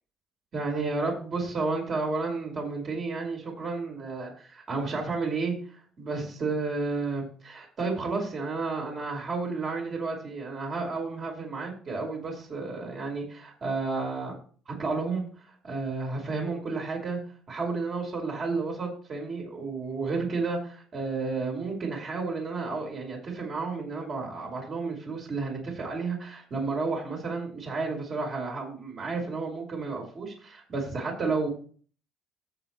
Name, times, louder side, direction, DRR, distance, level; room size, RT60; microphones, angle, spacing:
voice 1, 0.5-5.5 6.0-14.4 14.7-15.2 15.6-17.2 17.5-31.5, right 3 dB, 45° right, -1 dB, 4.9 m, -31 dB
13.5 x 7.4 x 3.3 m, 0.44 s
hypercardioid pair, 55°, 0 cm